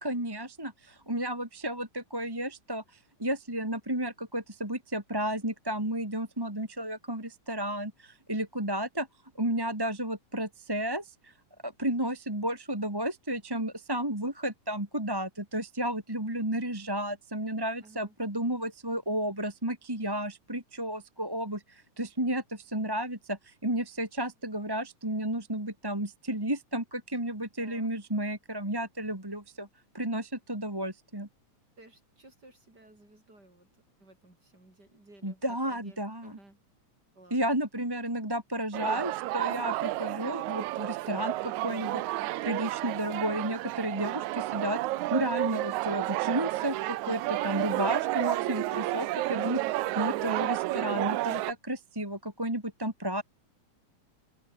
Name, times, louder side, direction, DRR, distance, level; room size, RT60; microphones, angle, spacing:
voice 1, 0.0-9.1 9.3-11.3 11.6-29.7 29.9-31.3 35.2-36.3 37.3-44.8 45.1-53.2, right 1 dB, 10° right, 2.3 m, -32 dB
voice 2, 17.8-18.1 27.1-27.3 27.6-28.0 31.8-33.7 34.0-36.6 37.1-37.4, right 2 dB, 30° right, 8.6 m, -55 dB
sound 1, 38.7-51.5, right 17 dB, 80° right, 2.0 m, -31 dB
open air
omnidirectional pair, 3.6 m